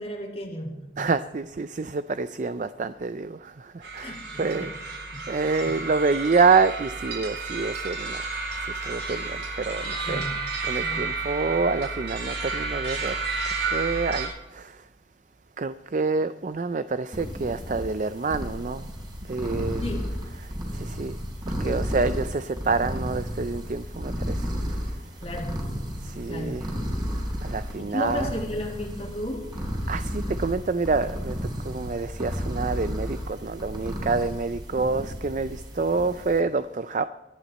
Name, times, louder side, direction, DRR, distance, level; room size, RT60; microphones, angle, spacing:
voice 1, 0.0-1.1 4.0-4.7 5.1-5.3 5.7-5.8 10.0-10.4 10.8-11.1 19.8-20.1 21.6-22.2 25.2-25.6 26.3-26.6 27.8-29.5, left 1 dB, 35° left, 2.1 m, -34 dB
voice 2, 1.0-4.7 5.3-8.3 8.6-10.2 10.6-13.2 13.4-14.8 15.6-18.9 19.3-19.8 20.7-21.2 21.6-24.5 26.0-26.6 27.4-28.3 29.9-31.3 31.6-37.0, right 4 dB, 45° right, 0.4 m, -27 dB
sound 1, 3.8-14.3, right 4 dB, 75° right, 6.5 m, -31 dB
sound 2, 17.1-36.4, equal, 25° right, 3.9 m, -33 dB
23.5 x 11.0 x 4.2 m
head